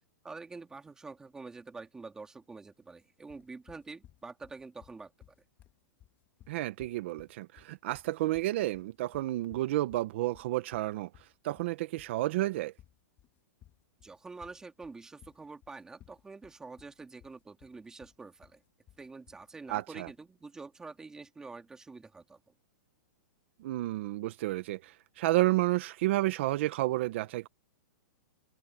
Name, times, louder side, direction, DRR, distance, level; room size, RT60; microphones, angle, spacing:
voice 1, 0.2-5.1 14.0-18.6 19.0-22.4, right 4 dB, 5° right, 1.9 m, -47 dB
sound 1, 3.3-20.3, left 12 dB, 20° left, 2.1 m, -60 dB
voice 2, 6.5-12.7 19.7-20.1 23.6-27.5, right 17 dB, 40° right, 0.8 m, -31 dB
hypercardioid pair, 170°, 10 cm